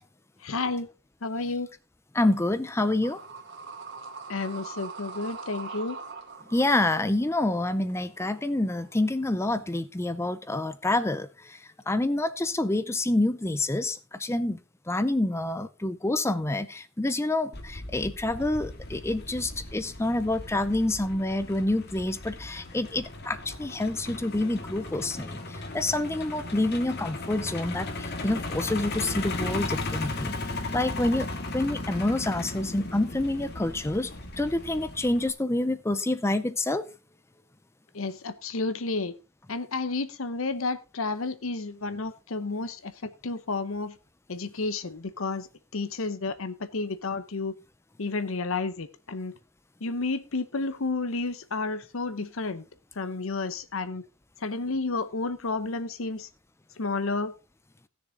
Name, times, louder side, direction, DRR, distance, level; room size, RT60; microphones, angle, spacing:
voice 1, 0.4-0.9 1.2-1.7 4.3-6.0 37.9-39.1 39.5-44.0 44.3-47.5 48.0-49.3 49.8-52.6 53.0-54.0 54.4-56.3 56.8-57.3, left 3 dB, 70° left, 0.8 m, -31 dB
voice 2, 2.1-3.2 6.5-14.6 14.9-34.1 34.4-36.9, left 2 dB, 15° left, 0.5 m, -27 dB
sound 1, 3.0-9.3, right 4 dB, 60° right, 2.1 m, -43 dB
Truck, 17.5-35.3, left 2 dB, 50° left, 1.8 m, -36 dB
16.0 x 6.8 x 3.7 m
head